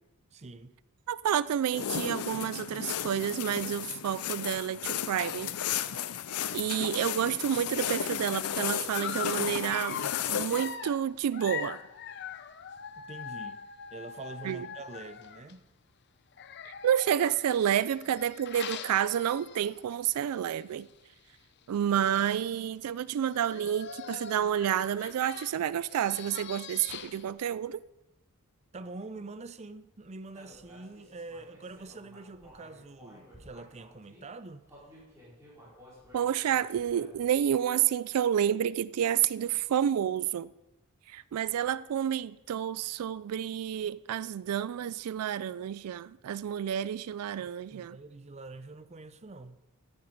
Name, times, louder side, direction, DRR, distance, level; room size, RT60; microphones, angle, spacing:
voice 1, 0.3-0.8 13.0-13.6 13.9-15.6 28.7-34.6 47.4-49.6, right 3 dB, 30° right, 0.5 m, -45 dB
voice 2, 1.1-5.5 6.5-10.0 10.3-11.8 14.4-14.7 16.8-20.9 21.7-27.8 36.1-40.5 41.1-48.0, right 9 dB, 85° right, 0.3 m, -29 dB
sound 1, 1.7-10.8, left 9 dB, 90° left, 0.6 m, -34 dB
Dog, 9.0-15.5 16.3-19.9 20.3-20.5 20.8-20.9 21.7-21.8 22.0-22.6 23.2-27.3, left 7 dB, 50° left, 0.6 m, -42 dB
Human voice, 30.3-34.2 34.7-37.4, equal, 15° right, 4.5 m, -55 dB
13.0 x 8.8 x 5.2 m
head